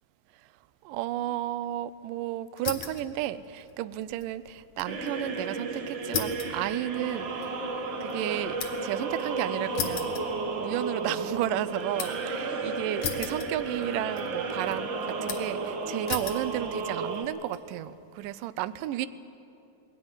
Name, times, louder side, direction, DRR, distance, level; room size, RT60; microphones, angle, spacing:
voice 1, 0.8-7.5 8.0-10.1 10.6-19.1, right 13 dB, 80° right, 14 dB, 1.9 m, -33 dB
sound 1, 2.6-3.1 3.4-5.0 5.3-5.4 6.1-9.0 9.8-10.9 11.3-12.3 13.0-13.9 14.2-14.8 15.3-15.6 16.1-16.5 17.1-17.6, left 7 dB, 60° left, 2.2 m, -36 dB
sound 2, 4.9-17.2, right 3 dB, 65° right, 1.1 m, -33 dB
21.5 x 17.0 x 9.6 m, 2.7 s
omnidirectional pair, 4.5 m